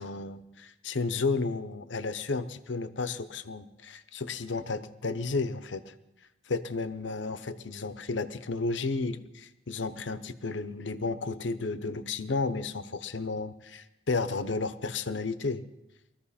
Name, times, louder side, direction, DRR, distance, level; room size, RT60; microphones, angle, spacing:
voice 1, 0.0-5.9 6.5-15.6, left 3 dB, 80° left, 12 dB, 0.8 m, -32 dB
21.0 x 14.5 x 4.2 m, 0.91 s
head